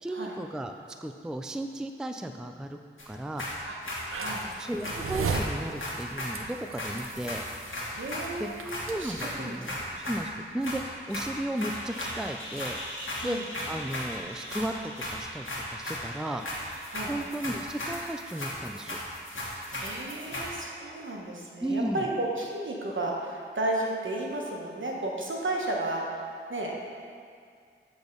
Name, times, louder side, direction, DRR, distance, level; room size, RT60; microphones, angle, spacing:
voice 1, 0.0-0.7 1.0-2.8 3.1-3.4 4.6-7.4 7.9-8.0 8.4-8.5 8.9-9.7 10.0-12.8 13.2-13.4 13.7-16.4 17.1-19.0 21.6-22.0, right 1 dB, 5° right, 6 dB, 0.3 m, -34 dB
sound 1, 3.0-3.1 3.4-4.4 4.8-6.4 6.8-8.3 8.7-10.3 10.6-10.8 11.1-20.5, left 1 dB, 70° left, 1.5 m, -36 dB
voice 2, 4.1-4.5 7.9-9.9 13.2-13.4 16.9-17.1 19.5-26.8, right 2 dB, 70° right, -2 dB, 1.1 m, -33 dB
sound 2, 4.1-9.3, right 4 dB, 90° right, 0.5 m, -36 dB
8.0 x 3.5 x 5.2 m, 2.2 s
wide cardioid pair, 45°, 21 cm